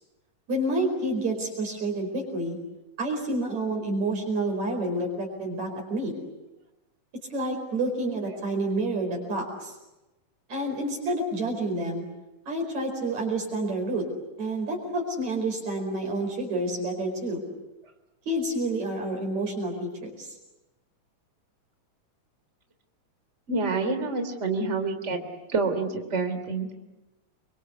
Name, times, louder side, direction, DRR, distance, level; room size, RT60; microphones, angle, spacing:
voice 1, 0.5-2.6 3.0-6.2 7.3-9.7 10.5-12.0 12.5-14.0 14.4-17.4 18.3-20.3, right 1 dB, 60° right, 1 dB, 6.0 m, -29 dB
voice 2, 23.5-25.2 25.5-26.7, right 3 dB, 20° right, 7 dB, 3.4 m, -27 dB
29.0 x 24.5 x 8.2 m, 1.0 s
omnidirectional pair, 3.7 m